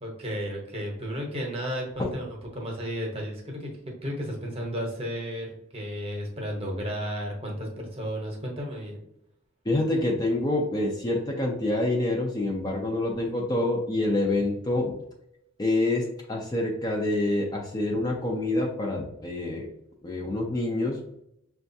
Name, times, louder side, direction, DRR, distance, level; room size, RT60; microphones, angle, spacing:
voice 1, 0.0-2.3 2.5-9.0, equal, 30° right, 0 dB, 0.8 m, -33 dB
voice 2, 9.7-14.9 15.6-19.7 20.0-21.0, left 2 dB, 20° left, -1 dB, 0.4 m, -27 dB
5.9 x 2.3 x 2.6 m, 0.77 s
head